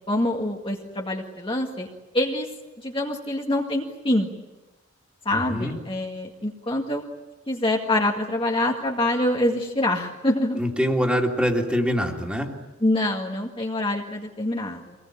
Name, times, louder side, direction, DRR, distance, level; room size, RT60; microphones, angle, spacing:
voice 1, 0.1-1.9 2.1-2.5 2.8-4.3 5.3-7.0 7.5-10.6 12.8-15.0, left 1 dB, 25° left, 0 dB, 1.9 m, -25 dB
voice 2, 5.3-5.8 10.6-12.5, equal, 5° right, 1 dB, 2.9 m, -24 dB
26.0 x 20.0 x 8.9 m, 1.1 s
head